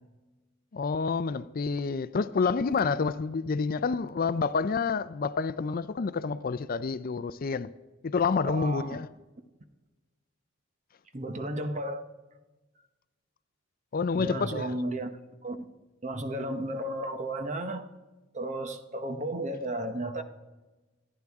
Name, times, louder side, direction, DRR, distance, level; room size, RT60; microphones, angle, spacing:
voice 1, 0.7-7.7 8.0-9.1 13.9-14.8, left 5 dB, 45° left, 0.4 m, -28 dB
voice 2, 8.4-9.0 11.1-12.1 14.2-15.2 15.4-15.7 16.0-17.9 18.3-20.2, right 1 dB, 35° right, 0.9 m, -33 dB
26.5 x 9.9 x 3.6 m
head